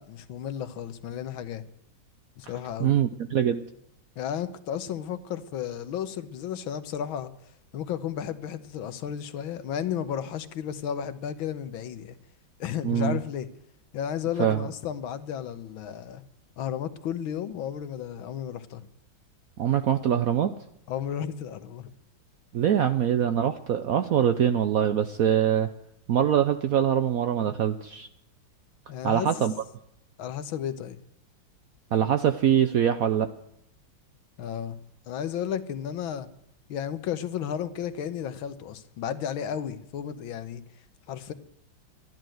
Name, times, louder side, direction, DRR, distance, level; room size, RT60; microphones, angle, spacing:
voice 1, 0.0-1.6 2.4-3.0 4.2-7.3 7.7-12.2 12.6-13.5 13.9-16.2 16.6-18.9 20.9-21.9 28.9-29.5 30.2-31.0 34.4-34.8 35.1-36.3 36.7-40.6 41.1-41.3, left 9 dB, 75° left, 1.7 m, -33 dB
voice 2, 2.8-3.6 12.8-13.2 14.4-14.6 19.6-20.5 22.5-25.7 26.1-28.1 29.0-29.5 31.9-33.3, right 9 dB, 80° right, 0.7 m, -23 dB
12.5 x 10.5 x 7.7 m
omnidirectional pair, 2.3 m